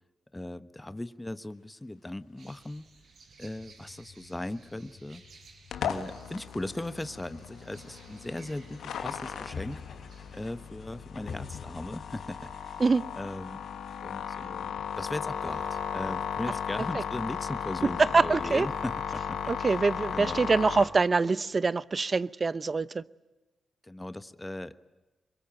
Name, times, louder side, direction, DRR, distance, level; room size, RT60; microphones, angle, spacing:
voice 1, 0.3-2.9 3.4-5.2 5.8-9.8 10.3-12.8 13.2-19.5 20.1-20.5 23.8-24.8, left 1 dB, 15° left, 12 dB, 1.2 m, -38 dB
sound 1, 2.4-10.5, right 4 dB, 70° right, 5.6 m, -57 dB
sound 2, 3.6-21.5, left 6 dB, 65° left, 4.3 m, -50 dB
sound 3, 5.7-20.8, left 8 dB, 85° left, 2.0 m, -36 dB
voice 2, 18.1-18.7 19.5-23.0, right 4 dB, 40° right, 17 dB, 0.8 m, -25 dB
25.5 x 23.0 x 9.1 m, 1.1 s
supercardioid pair, 55°, 0 cm